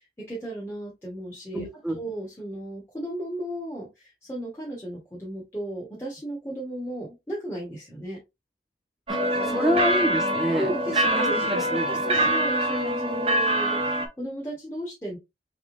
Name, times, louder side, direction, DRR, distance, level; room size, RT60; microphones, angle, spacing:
voice 1, 0.0-1.6 1.9-8.2 9.4-9.7 10.5-11.4 11.9-15.2, right 1 dB, 15° left, 1.3 m, -35 dB
voice 2, 1.5-2.0 9.1-10.7 11.0-12.3, equal, ahead, 0.9 m, -28 dB
sound 1, 9.1-14.1, right 1 dB, 35° right, 0.8 m, -24 dB
4.0 x 3.6 x 2.6 m
head